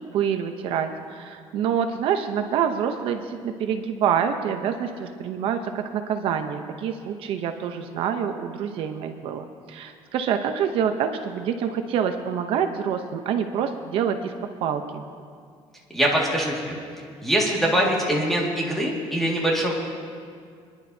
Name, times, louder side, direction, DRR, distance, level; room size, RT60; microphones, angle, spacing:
voice 1, 0.0-14.3 14.6-15.0, right 8 dB, 60° right, 6 dB, 0.7 m, -26 dB
voice 2, 15.9-16.8 17.2-19.7, right 1 dB, 5° left, -3 dB, 2.0 m, -23 dB
27.0 x 10.5 x 2.8 m, 2.2 s
cardioid pair, 160°, 10 cm